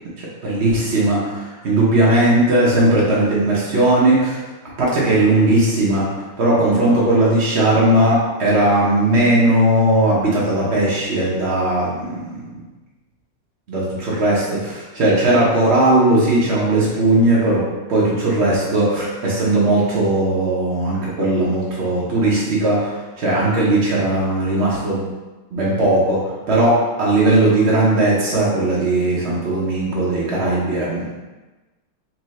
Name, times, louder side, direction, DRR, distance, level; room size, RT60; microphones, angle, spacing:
voice 1, 0.2-4.4 4.8-6.0 6.4-12.3 13.7-17.6 17.9-25.1 25.5-26.2 26.5-31.0, right 1 dB, 85° right, -6 dB, 0.5 m, -17 dB
4.3 x 2.7 x 3.1 m, 1.2 s
omnidirectional pair, 2.4 m